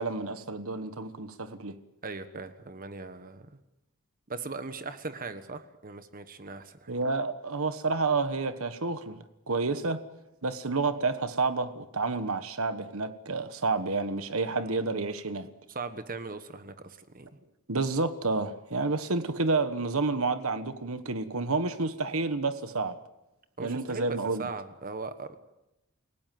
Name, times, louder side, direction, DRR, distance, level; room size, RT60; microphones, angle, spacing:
voice 1, 0.0-1.7 6.9-9.2 9.5-10.0 10.4-15.5 17.7-23.0 23.6-24.5, right 3 dB, 65° right, 10 dB, 1.4 m, -29 dB
voice 2, 2.0-3.5 4.3-6.9 14.6-14.7 15.7-17.3 23.6-25.4, right 3 dB, 40° right, 10 dB, 1.3 m, -39 dB
29.5 x 18.0 x 7.8 m, 0.92 s
head